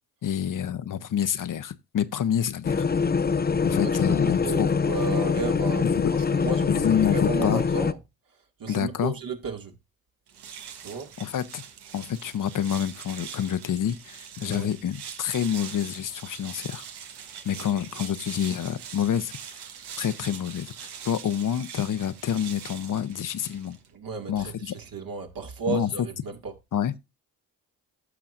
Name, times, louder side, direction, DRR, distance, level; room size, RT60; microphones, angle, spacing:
voice 1, 0.2-2.9 3.6-4.7 5.8-6.1 6.7-7.6 8.7-9.1 11.2-11.6 11.9-16.8 17.4-19.5 20.0-23.8 24.3-24.7 25.7-26.1 26.7-26.9, left 9 dB, 55° left, 0.8 m, -28 dB
sound 1, 2.6-7.9, left 5 dB, 25° left, 0.6 m, -24 dB
voice 2, 3.6-5.9 6.3-8.0 8.6-9.7 10.8-11.1 14.4-14.7 17.5-17.6 23.9-26.5, right 4 dB, 60° right, 2.2 m, -34 dB
sound 2, 10.3-23.9, right 8 dB, 85° right, 1.4 m, -42 dB
14.5 x 5.9 x 2.6 m
supercardioid pair, 55°, 39 cm